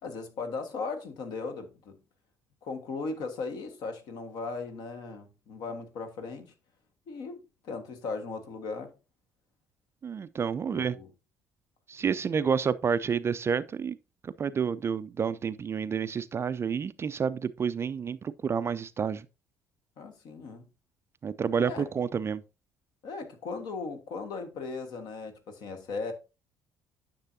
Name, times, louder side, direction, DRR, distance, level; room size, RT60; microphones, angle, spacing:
voice 1, 0.0-2.0 2.6-6.5 7.1-7.4 7.6-8.9 10.7-11.1 20.0-20.6 21.6-21.9 23.0-26.1, left 4 dB, 55° left, 1.5 m, -37 dB
voice 2, 10.0-11.0 11.9-14.0 14.2-19.3 21.2-22.4, right 6 dB, 30° right, 0.4 m, -29 dB
9.6 x 6.6 x 2.7 m
figure-of-eight pair, 50°, 9 cm